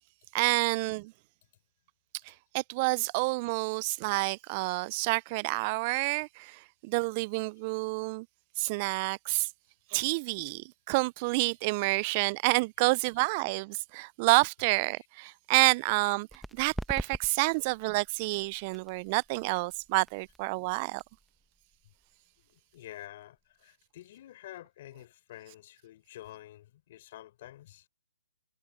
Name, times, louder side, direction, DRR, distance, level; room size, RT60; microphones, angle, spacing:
voice 1, 0.3-1.1 2.3-8.3 8.6-9.5 9.9-21.0, right 27 dB, 30° right, 0.4 m, -29 dB
sound 1, 16.3-23.6, right 1 dB, ahead, 0.9 m, -45 dB
voice 2, 22.5-27.9, left 14 dB, 40° left, 4.0 m, -49 dB
hypercardioid pair, 145°, 0 cm